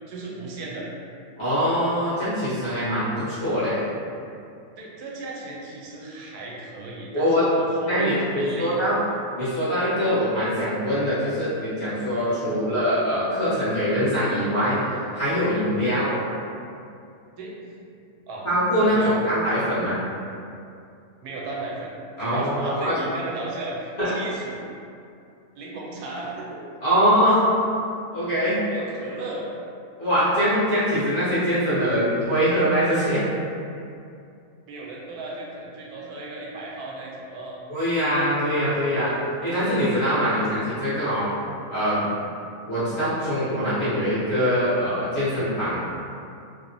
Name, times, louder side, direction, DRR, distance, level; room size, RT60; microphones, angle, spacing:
voice 1, 0.1-0.9 4.8-8.8 12.4-12.7 15.8-16.0 17.4-17.5 18.3-18.5 18.8-19.1 21.2-24.6 25.6-26.6 28.7-29.4 34.7-37.6 40.3-40.4 41.3-41.5 41.9-42.2, right 2 dB, 85° right, -4 dB, 1.1 m, -35 dB
voice 2, 1.4-3.8 7.1-7.4 7.9-9.0 9.4-14.8 15.1-16.2 18.4-20.0 22.2-23.0 24.0-24.1 26.8-27.5 28.1-28.6 30.0-33.2 37.7-39.1 39.4-41.3 41.7-42.0 42.7-45.8, equal, 50° left, -12 dB, 1.0 m, -23 dB
2.8 x 2.0 x 2.5 m, 2.5 s
omnidirectional pair, 1.6 m